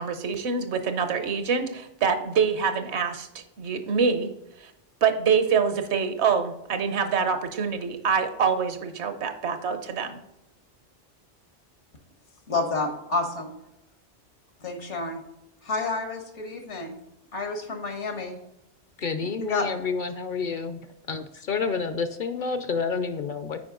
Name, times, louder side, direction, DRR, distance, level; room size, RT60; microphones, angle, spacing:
voice 1, 0.0-4.3 4.6-4.7 5.0-10.2, right 6 dB, 70° right, 9 dB, 1.1 m, -25 dB
voice 2, 12.5-13.5 14.6-15.2 15.6-17.0 17.3-18.3 19.4-19.7, left 3 dB, 80° left, 5 dB, 1.6 m, -29 dB
voice 3, 19.0-20.8 21.1-23.6, left 5 dB, 55° left, 10 dB, 0.6 m, -29 dB
8.7 x 5.1 x 3.8 m, 0.87 s
omnidirectional pair, 1.2 m